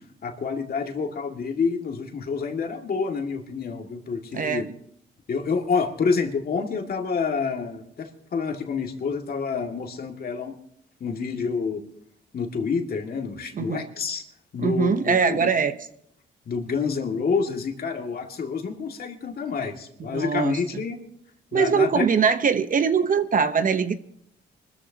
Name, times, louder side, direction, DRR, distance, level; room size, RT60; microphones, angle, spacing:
voice 1, 0.2-4.7 5.3-10.5 11.0-11.8 12.3-14.2 14.5-15.6 16.5-21.0 21.5-22.1, left 5 dB, 50° left, 3 dB, 2.3 m, -28 dB
voice 2, 14.6-15.8 20.0-20.8 21.5-23.9, right 6 dB, 45° right, 10 dB, 1.0 m, -22 dB
25.5 x 14.0 x 2.9 m, 0.73 s
cardioid pair, 90°, 20 cm